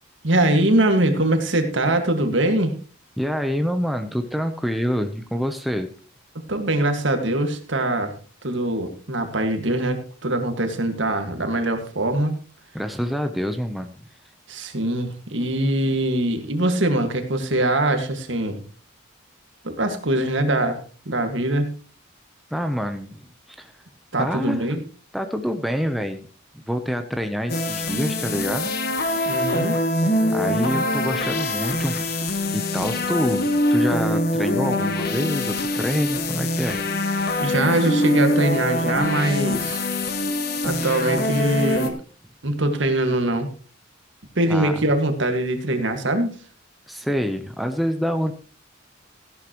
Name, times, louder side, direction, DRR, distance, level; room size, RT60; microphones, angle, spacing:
voice 1, 0.2-2.8 6.5-8.1 8.4-12.3 14.5-18.6 19.6-21.7 24.1-24.8 29.3-29.7 37.4-39.8 40.6-41.9 42.4-43.5 44.4-46.3, right 1 dB, 65° right, 7 dB, 1.9 m, -22 dB
voice 2, 3.2-5.9 12.7-14.0 22.5-23.2 23.6-23.7 24.2-24.8 25.1-26.2 26.5-28.7 30.3-32.1 32.5-36.8 44.5-44.8 46.9-48.3, equal, ahead, 6 dB, 0.7 m, -26 dB
sound 1, 27.5-41.9, left 1 dB, 50° left, 1.3 m, -24 dB
15.5 x 11.0 x 3.0 m, 0.39 s
head